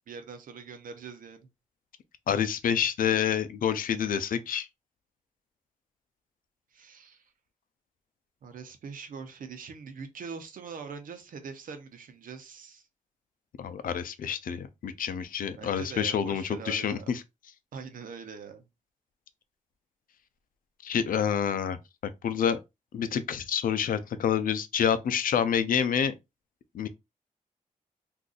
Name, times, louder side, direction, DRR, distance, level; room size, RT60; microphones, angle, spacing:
voice 1, 0.1-1.5 6.7-7.3 8.4-12.9 15.5-17.1 17.7-18.7, right 5 dB, 80° right, 0.7 m, -43 dB
voice 2, 2.3-4.7 13.6-17.2 20.8-21.8 22.2-22.6 22.9-26.1 26.7-26.9, left 8 dB, 90° left, 0.5 m, -28 dB
3.8 x 2.6 x 2.4 m
wide cardioid pair, 150°, 14 cm